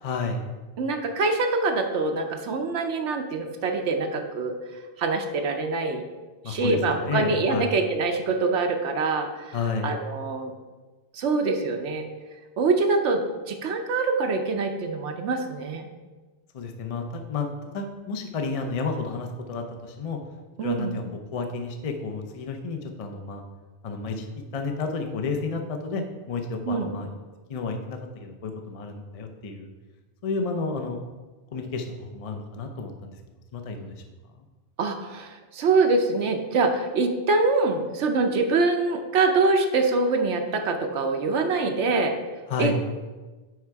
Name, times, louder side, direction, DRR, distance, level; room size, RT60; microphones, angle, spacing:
voice 1, 0.0-0.5 6.4-7.7 9.5-9.9 16.5-17.5 17.7-20.2 20.6-21.0 21.3-23.4 23.8-24.3 24.5-27.1 27.5-29.7 30.2-31.0 31.5-33.1 33.5-34.0 42.5-42.8, left 4 dB, 40° left, 4 dB, 0.6 m, -31 dB
voice 2, 0.8-4.6 5.0-6.0 6.5-9.6 9.8-10.5 11.1-12.1 12.6-15.9 20.6-21.0 26.7-26.9 34.8-42.2 42.6-42.8, right 3 dB, 85° right, 4 dB, 1.0 m, -24 dB
9.4 x 3.6 x 4.6 m, 1.2 s
omnidirectional pair, 1.2 m